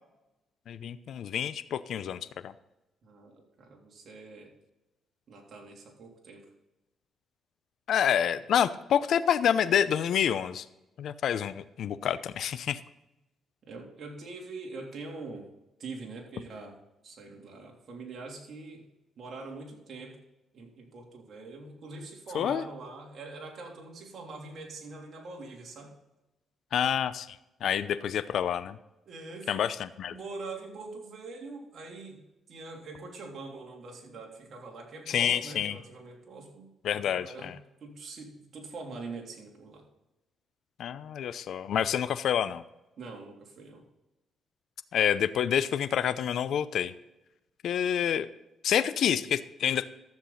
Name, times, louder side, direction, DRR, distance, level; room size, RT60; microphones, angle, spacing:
voice 1, 0.7-2.5 7.9-10.6 11.0-12.8 22.3-22.6 26.7-27.4 27.6-28.8 29.5-30.1 35.1-35.8 36.8-37.6 40.8-42.6 44.9-46.9 47.6-48.3 48.6-49.9, left 9 dB, 70° left, 13 dB, 0.6 m, -28 dB
voice 2, 3.0-4.5 5.3-6.5 13.6-15.5 15.8-16.8 17.0-18.9 19.2-20.2 20.5-26.0 29.0-29.5 30.1-32.2 32.5-39.8 43.0-43.8, right 3 dB, 55° right, 0 dB, 3.3 m, -43 dB
13.0 x 7.6 x 4.1 m, 0.95 s
cardioid pair, 90°, 0 cm